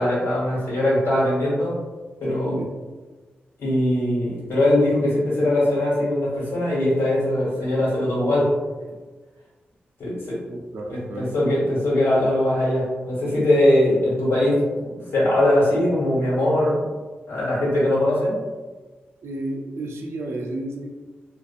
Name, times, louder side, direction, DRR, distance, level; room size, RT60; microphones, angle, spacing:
voice 1, 0.0-1.8 2.2-2.6 3.6-8.5 10.0-10.4 10.9-16.7 17.3-18.4, left 1 dB, 75° left, -8 dB, 1.5 m, -21 dB
voice 2, 10.5-11.3 19.2-20.9, right 1 dB, 70° right, 0 dB, 0.5 m, -32 dB
2.5 x 2.5 x 2.4 m, 1.3 s
supercardioid pair, 45°, 5 cm